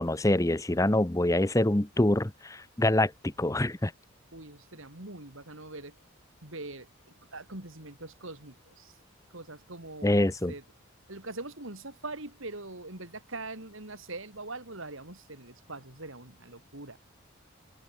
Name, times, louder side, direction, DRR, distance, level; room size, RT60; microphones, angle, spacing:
voice 1, 0.0-3.9 10.0-10.5, left 1 dB, 15° left, 0.7 m, -25 dB
voice 2, 4.3-5.9 6.4-9.0 9.3-10.6 11.1-17.0, right 2 dB, 70° right, 3.9 m, -43 dB
open air
head